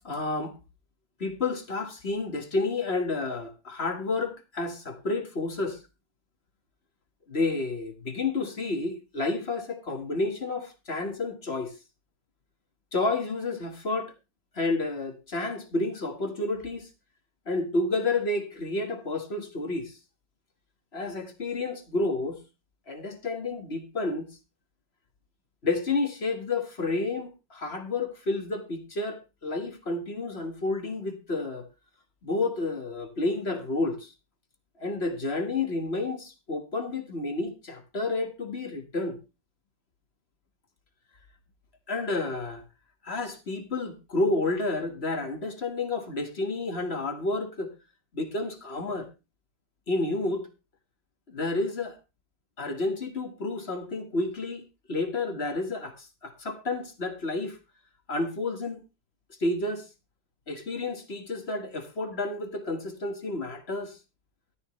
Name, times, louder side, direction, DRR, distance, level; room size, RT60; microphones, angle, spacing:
voice 1, 0.0-0.5 1.2-5.8 7.3-11.7 12.9-14.1 14.6-16.9 17.5-19.9 20.9-22.4 22.9-24.3 25.6-31.7 32.2-34.1 34.8-39.2 41.9-42.6 43.0-47.7 48.1-49.1 49.9-50.5 51.3-52.0 52.6-57.6 58.1-58.8 59.4-59.8 60.5-64.0, left 2 dB, 35° left, 1.8 m, -30 dB
14.5 x 12.0 x 3.2 m
omnidirectional pair, 2.1 m